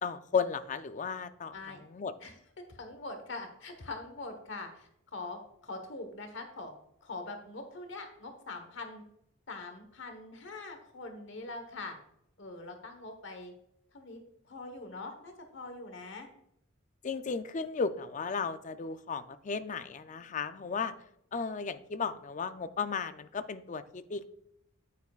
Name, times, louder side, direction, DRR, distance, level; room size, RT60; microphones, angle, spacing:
voice 1, 0.0-1.6 1.8-2.1 17.0-20.9 21.3-24.2, left 5 dB, 40° left, 11 dB, 0.4 m, -34 dB
voice 2, 2.7-6.7 7.0-9.0 9.5-12.0 12.4-13.5 13.9-14.2 14.4-16.3, left 3 dB, 65° left, 6 dB, 1.2 m, -43 dB
9.6 x 9.2 x 2.4 m, 0.75 s
head